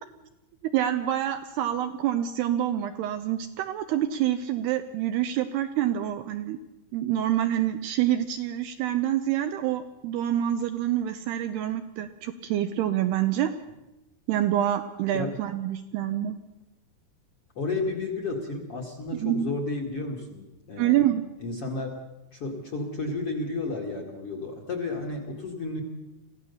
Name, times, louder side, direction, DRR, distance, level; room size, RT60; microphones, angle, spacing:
voice 1, 0.7-6.6 6.9-13.5 14.3-16.4 19.1-19.5 20.8-21.2, right 11 dB, 75° right, 8 dB, 2.5 m, -27 dB
voice 2, 17.6-21.1 21.4-21.9 22.3-25.8, left 3 dB, 45° left, 4 dB, 2.2 m, -32 dB
24.5 x 16.0 x 7.0 m, 0.97 s
omnidirectional pair, 5.3 m